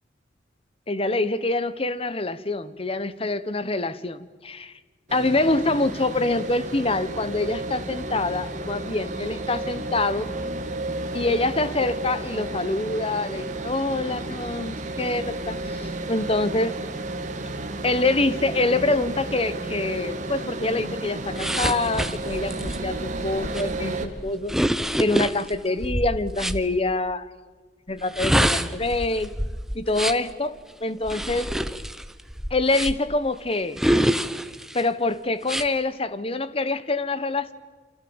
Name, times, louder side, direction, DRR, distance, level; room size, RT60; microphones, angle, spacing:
voice 1, 0.9-4.7 5.1-10.3 11.1-16.7 17.8-24.6 25.0-27.3 27.9-29.3 29.7-30.6 30.8-31.5 32.5-33.8 34.7-37.5, left 2 dB, 30° left, 14 dB, 1.1 m, -25 dB
sound 1, 5.1-24.1, right 2 dB, 40° right, 2.4 m, -32 dB
sound 2, 21.4-26.6 28.0-30.3 31.0-33.2 33.8-34.8 35.4-35.7, equal, ahead, 0.9 m, -26 dB
29.0 x 26.5 x 7.2 m, 1.4 s
head